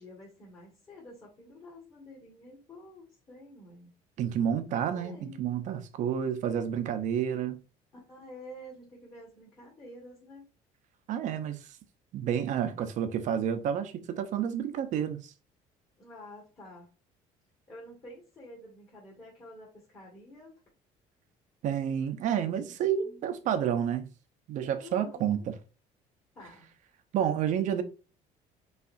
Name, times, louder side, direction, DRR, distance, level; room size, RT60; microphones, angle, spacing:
voice 1, 0.0-3.9 4.9-5.4 7.9-10.5 16.0-16.9 17.7-20.6 22.6-22.7 23.0-23.4 24.7-25.5 26.4-26.7, left 1 dB, 30° left, 2.0 m, -49 dB
voice 2, 4.2-7.6 11.1-11.6 12.1-15.2 21.6-24.1 24.5-25.5 27.1-27.8, right 9 dB, 55° right, 0.8 m, -30 dB
5.6 x 3.3 x 2.6 m
cardioid pair, 155°, 15 cm